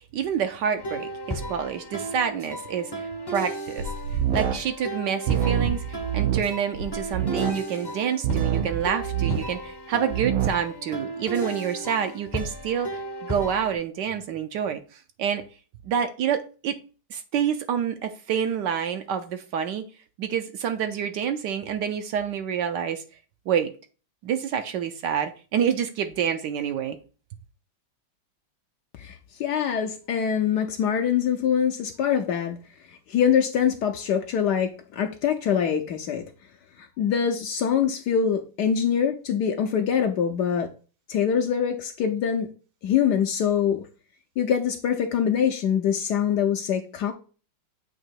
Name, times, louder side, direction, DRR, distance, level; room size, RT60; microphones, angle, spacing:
voice 1, 0.1-3.9 4.3-15.4 15.8-16.8 17.1-19.9 20.2-23.0 23.5-23.7 24.2-27.0, right 8 dB, 70° right, 1.1 m, -28 dB
sound 1, 0.8-13.7, right 1 dB, 25° left, 0.5 m, -35 dB
sound 2, 3.8-4.6 5.3-7.6 8.2-9.5 10.1-10.5, right 9 dB, 90° right, 1.6 m, -26 dB
voice 2, 29.0-32.6 33.1-36.2 36.8-40.7 41.1-42.5 42.8-43.8 44.4-47.1, left 8 dB, 70° left, 1.1 m, -24 dB
7.5 x 2.9 x 4.4 m
omnidirectional pair, 2.2 m